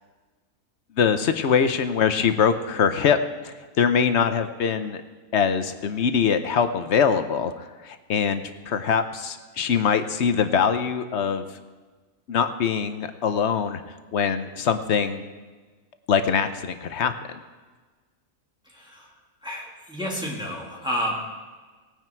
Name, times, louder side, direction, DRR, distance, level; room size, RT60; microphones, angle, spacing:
voice 1, 1.0-3.2 3.4-5.0 5.3-7.5 7.8-11.4 12.3-13.8 14.1-15.2 16.1-17.1, left 7 dB, 60° left, 10 dB, 1.1 m, -23 dB
voice 2, 18.7-19.1 19.4-21.2, equal, 5° right, -4 dB, 2.6 m, -30 dB
19.0 x 9.2 x 4.6 m, 1.3 s
omnidirectional pair, 1.4 m